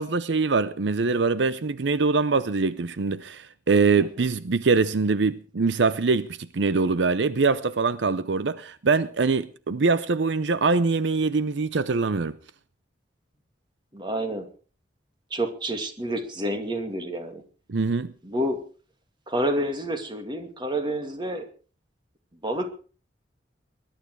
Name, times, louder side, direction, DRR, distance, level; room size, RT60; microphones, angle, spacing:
voice 1, 0.0-12.4 17.7-18.1, right 4 dB, 80° right, 0.7 m, -23 dB
voice 2, 13.9-14.5 15.3-17.4 18.2-18.6 19.3-21.5 22.4-22.7, right 1 dB, 25° right, 2.3 m, -29 dB
20.5 x 12.0 x 4.7 m
head